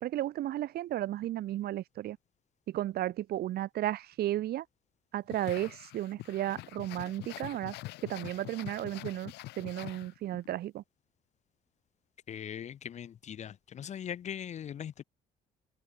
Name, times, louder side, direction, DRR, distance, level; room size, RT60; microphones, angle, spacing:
voice 1, 0.0-2.2 2.7-4.7 5.1-7.7 8.0-10.8, right 13 dB, 65° right, 2.0 m, -34 dB
sound 1, 5.3-10.5, left 18 dB, 85° left, 6.3 m, -45 dB
voice 2, 12.3-13.5 13.8-15.0, left 9 dB, 45° left, 0.8 m, -40 dB
cardioid pair, 110°, 17 cm